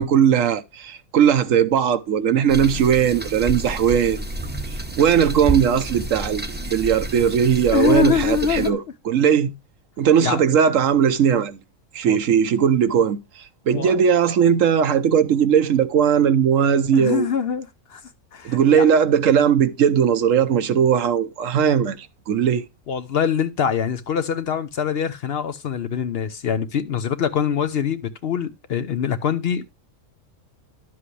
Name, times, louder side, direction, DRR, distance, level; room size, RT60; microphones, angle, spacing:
voice 1, 0.0-4.2 4.7-9.5 10.0-11.6 11.9-17.3 18.4-22.6, right 8 dB, 75° right, 1.1 m, -19 dB
sound 1, 2.5-8.7, right 2 dB, 10° right, 0.7 m, -30 dB
voice 2, 7.7-8.8 10.2-10.4 12.1-12.2 13.8-13.9 16.9-18.0 18.3-18.8 22.9-29.6, left 7 dB, 60° left, 0.8 m, -24 dB
11.0 x 7.6 x 3.2 m
omnidirectional pair, 1.4 m